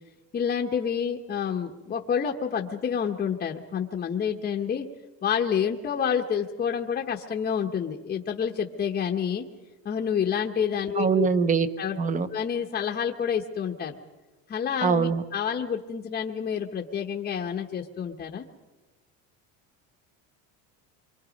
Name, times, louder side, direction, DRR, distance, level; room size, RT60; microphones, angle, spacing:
voice 1, 0.3-4.9 5.2-9.5 9.8-11.3 11.8-12.0 12.3-13.9 14.5-18.4, left 7 dB, 25° left, 2 dB, 1.0 m, -28 dB
voice 2, 11.0-11.7 12.0-12.3 14.8-15.2, right 6 dB, 20° right, 14 dB, 0.9 m, -23 dB
28.0 x 24.0 x 5.2 m, 1.2 s
cardioid pair, 155°, 39 cm